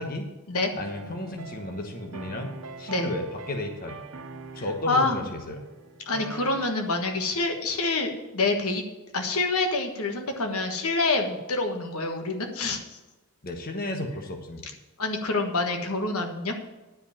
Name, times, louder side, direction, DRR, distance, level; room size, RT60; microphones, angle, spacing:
sound 1, 0.7-6.6, right 4 dB, 80° right, 1.1 m, -43 dB
voice 1, 0.8-2.5 2.8-4.0 4.5-5.6 13.4-14.7, left 1 dB, 40° left, 3 dB, 1.2 m, -33 dB
voice 2, 4.9-5.2 6.1-8.8 9.1-13.0 15.0-16.5, left 3 dB, 80° left, 4 dB, 1.4 m, -27 dB
11.0 x 5.1 x 8.6 m, 1.1 s
head